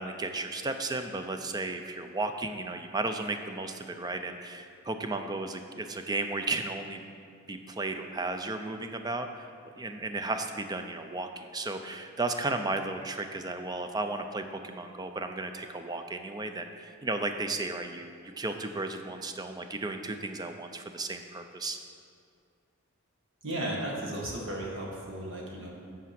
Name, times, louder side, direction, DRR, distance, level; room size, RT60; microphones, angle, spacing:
voice 1, 0.0-7.0 7.5-9.5 9.8-21.8, right 2 dB, 20° right, 7 dB, 0.4 m, -34 dB
voice 2, 23.4-25.8, right 1 dB, 65° right, -2 dB, 1.6 m, -35 dB
8.4 x 4.9 x 5.9 m, 2.3 s
head